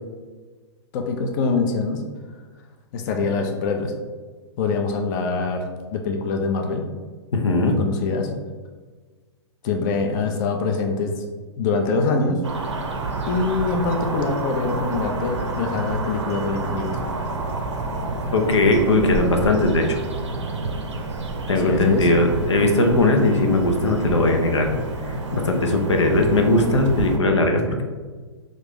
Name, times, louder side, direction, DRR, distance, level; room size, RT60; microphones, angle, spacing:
voice 1, 0.9-2.0 2.9-3.9 4.6-5.6 5.9-6.8 7.6-8.3 9.6-11.2 11.6-12.4 13.3-17.0 21.6-22.1, left 4 dB, 40° left, 3 dB, 0.5 m, -24 dB
voice 2, 7.3-7.8 18.3-20.0 21.5-24.7 25.1-27.8, left 2 dB, 90° left, 3 dB, 0.6 m, -19 dB
sound 1, 12.4-27.2, right 3 dB, 85° right, 0.6 m, -30 dB
sound 2, 13.0-13.3 13.6-13.7 14.9-15.0 15.3-15.4 15.9-16.0 17.4-18.2 18.8-19.0 19.3-19.4 19.7-19.8 20.1-20.2 21.8-22.0 22.3-22.4 23.7-23.8 24.1-24.2 24.6-24.7 26.1-26.8, right 6 dB, 35° right, 0.4 m, -31 dB
3.1 x 2.5 x 3.4 m, 1.4 s
hypercardioid pair, 120°, 15 cm